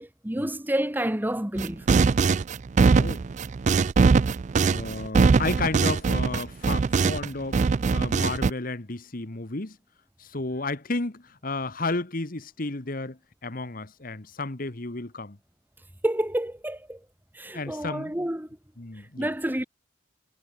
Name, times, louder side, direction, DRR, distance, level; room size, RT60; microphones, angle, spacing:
voice 1, 0.0-1.8 16.0-17.0 17.3-18.5 19.2-19.6, right 1 dB, 10° right, 1.4 m, -29 dB
sound 1, 1.6-7.3 7.5-8.5, right 4 dB, 40° right, 0.3 m, -21 dB
voice 2, 2.9-3.3 4.6-7.6 7.9-9.8 10.2-15.4 17.5-18.3 18.8-19.3, left 3 dB, 45° left, 1.4 m, -32 dB
head